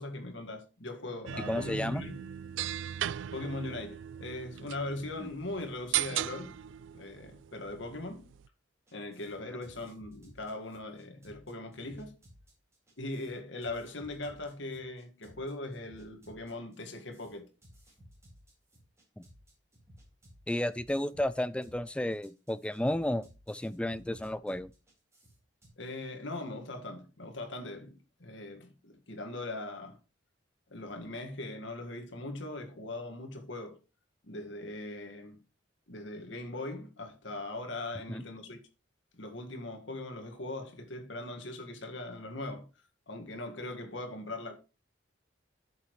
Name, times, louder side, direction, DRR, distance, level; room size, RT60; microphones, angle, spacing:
voice 1, 0.0-2.2 3.3-6.5 6.9-8.3 8.9-12.1 13.0-17.5 25.8-30.0 30.7-33.8 34.2-35.4 35.9-38.6 39.1-42.7 43.1-44.6, left 2 dB, 70° left, 1.9 m, -40 dB
sound 1, 1.3-8.5, right 12 dB, 75° right, 0.3 m, -38 dB
voice 2, 1.5-2.0 5.2-5.3 20.5-24.7 38.1-38.2, left 1 dB, 5° left, 0.4 m, -32 dB
sound 2, 8.9-25.7, equal, 15° right, 4.4 m, -58 dB
11.0 x 7.1 x 3.2 m
head